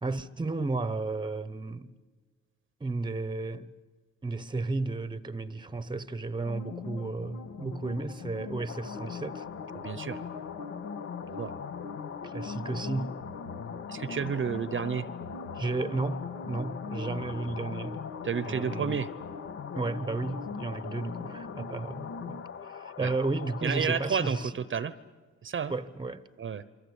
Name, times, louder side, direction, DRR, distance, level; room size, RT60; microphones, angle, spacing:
voice 1, 0.0-1.9 2.8-3.7 4.2-9.4 12.2-13.2 15.5-18.0 18.4-19.0 19.7-22.4 22.6-24.5 25.7-26.2, right 3 dB, 15° right, 1.0 m, -33 dB
sound 1, 6.5-22.4, left 5 dB, 85° left, 2.1 m, -41 dB
sound 2, 8.7-24.4, left 7 dB, 45° left, 0.8 m, -43 dB
voice 2, 9.7-10.2 11.3-11.5 13.9-15.1 18.2-19.1 23.0-23.1 23.6-24.9 25.4-25.7 26.4-26.6, right 7 dB, 40° right, 0.9 m, -31 dB
28.0 x 23.0 x 8.4 m
cardioid pair, 90°, 30 cm